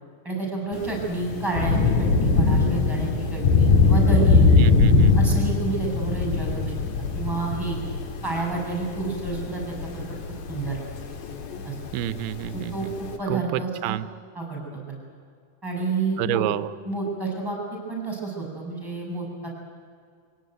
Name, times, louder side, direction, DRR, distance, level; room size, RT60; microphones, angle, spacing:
voice 1, 0.2-4.5 5.2-6.7 7.1-7.8 8.2-10.2 10.5-10.8 11.6-11.7 12.5-14.0 14.3-15.0 15.6-16.5 16.8-19.5, right 3 dB, 5° right, -1 dB, 7.1 m, -29 dB
Thunder / Rain, 0.7-13.1, left 4 dB, 55° left, 2.6 m, -22 dB
voice 2, 4.6-5.2 11.9-12.9 13.3-14.1 16.2-16.7, right 13 dB, 90° right, 15 dB, 2.7 m, -29 dB
25.0 x 17.5 x 9.3 m, 2.2 s
omnidirectional pair, 4.4 m